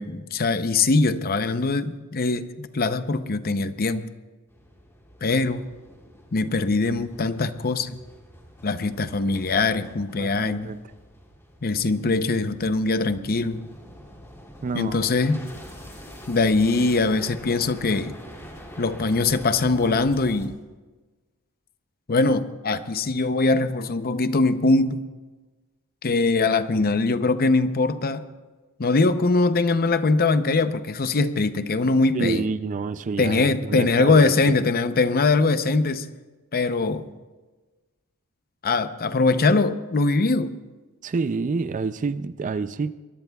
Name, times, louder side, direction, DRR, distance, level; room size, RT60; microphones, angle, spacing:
voice 1, 0.0-4.1 5.2-5.6 6.3-8.0 8.6-10.7 11.6-13.6 14.7-15.4 16.3-18.1 18.8-20.6 22.1-25.0 26.0-28.2 28.8-32.5 33.2-36.1 36.5-37.1 38.6-40.5, left 3 dB, 45° left, 11 dB, 0.7 m, -22 dB
sound 1, 4.5-20.5, equal, 10° left, 2.6 m, -45 dB
voice 2, 10.2-10.8 14.6-15.1 32.1-34.6 41.0-43.0, right 4 dB, 35° right, 13 dB, 0.4 m, -28 dB
23.0 x 21.0 x 2.3 m, 1.3 s
head